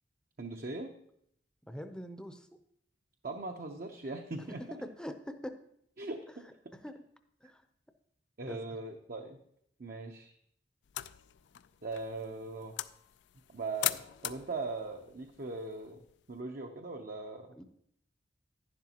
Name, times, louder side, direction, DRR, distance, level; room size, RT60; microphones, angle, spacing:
voice 1, 0.4-0.9 3.2-4.6 6.0-6.4 8.4-9.4 9.8-10.3 11.8-12.8 13.5-16.0 16.3-17.5, right 3 dB, 55° right, 3 dB, 0.7 m, -40 dB
voice 2, 1.7-2.5 4.8-5.6 6.8-6.9 7.4-7.6 8.5-8.6 17.6-17.7, equal, 5° left, 8 dB, 0.6 m, -42 dB
sound 1, 10.8-16.4, left 14 dB, 85° left, 0.3 m, -41 dB
11.0 x 10.5 x 2.9 m, 0.71 s
head